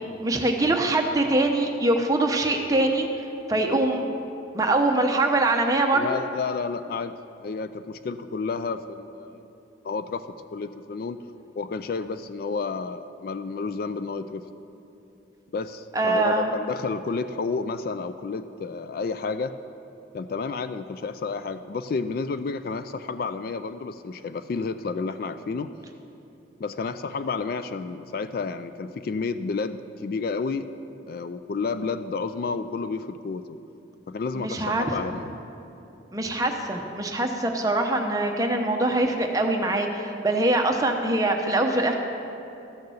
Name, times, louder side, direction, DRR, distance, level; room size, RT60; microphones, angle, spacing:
voice 1, 0.2-3.1 3.5-4.0 4.5-6.0 15.9-16.5 34.3-34.9 36.1-41.9, right 2 dB, 20° right, 3 dB, 0.8 m, -23 dB
voice 2, 5.9-9.5 9.8-10.3 10.5-11.2 11.6-14.4 15.5-19.6 20.1-25.7 26.6-30.7 31.1-33.5 34.1-35.4, left 4 dB, 50° left, 11 dB, 0.3 m, -31 dB
13.0 x 6.6 x 7.1 m, 2.9 s
head